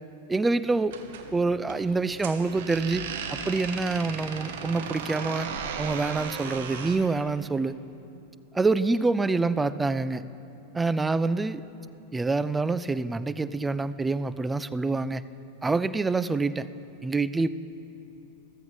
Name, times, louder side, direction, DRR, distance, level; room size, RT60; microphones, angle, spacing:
voice 1, 0.3-1.0 1.3-3.0 3.3-7.7 8.5-10.2 10.7-11.6 12.1-15.2 15.6-16.7 17.0-17.5, right 3 dB, 10° right, 15 dB, 0.3 m, -26 dB
sound 1, 0.9-7.1, right 6 dB, 55° right, 0.9 m, -36 dB
14.5 x 14.0 x 4.0 m, 2.8 s
figure-of-eight pair, 90°, 0 cm